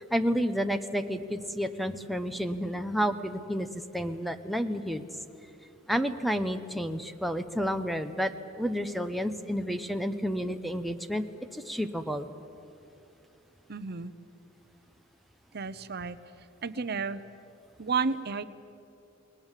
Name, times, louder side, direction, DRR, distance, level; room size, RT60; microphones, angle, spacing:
voice 1, 0.0-5.0 5.9-11.2 11.5-12.3, equal, ahead, 9 dB, 0.8 m, -30 dB
voice 2, 13.7-14.1 15.5-16.2 16.6-17.2 17.8-18.4, right 5 dB, 55° right, 12 dB, 0.8 m, -31 dB
29.5 x 20.5 x 7.5 m, 2.7 s
head